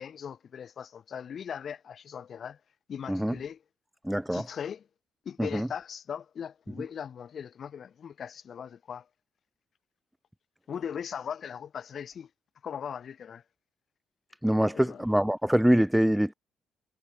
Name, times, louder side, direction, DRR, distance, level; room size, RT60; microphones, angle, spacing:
voice 1, 0.0-2.6 2.9-3.6 4.3-4.9 5.3-9.1 10.7-12.3 12.6-13.4 14.6-15.0, left 7 dB, 55° left, 1.9 m, -39 dB
voice 2, 4.0-4.4 5.4-5.7 14.4-16.3, equal, 5° right, 0.5 m, -24 dB
cardioid pair, 90°, 0 cm